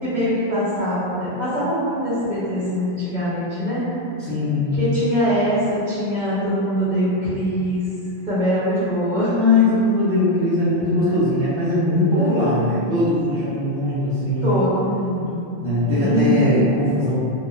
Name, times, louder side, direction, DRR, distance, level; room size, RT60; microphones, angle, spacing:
voice 1, 0.0-3.8 4.7-7.8 8.3-9.4 10.9-11.4 12.1-13.0 14.4-15.4 16.0-16.8, equal, 50° right, -12 dB, 0.9 m, -23 dB
voice 2, 4.2-4.8 9.4-14.6 15.6-17.1, left 2 dB, 15° left, -15 dB, 0.7 m, -20 dB
3.0 x 2.1 x 2.4 m, 2.6 s
omnidirectional pair, 1.1 m